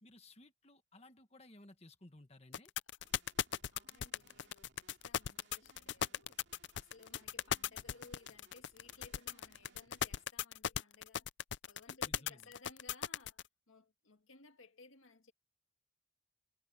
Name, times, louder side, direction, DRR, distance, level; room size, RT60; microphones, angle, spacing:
voice 1, 0.0-2.7 12.0-12.5, left 2 dB, 30° left, 1.6 m, -58 dB
sound 1, 2.5-13.4, left 9 dB, 60° left, 0.5 m, -37 dB
voice 2, 3.0-3.3 3.7-6.4 6.7-11.3 11.7-13.4 13.7-15.3, left 3 dB, 85° left, 1.9 m, -60 dB
sound 2, 3.0-10.3, right 3 dB, 60° right, 2.5 m, -68 dB
head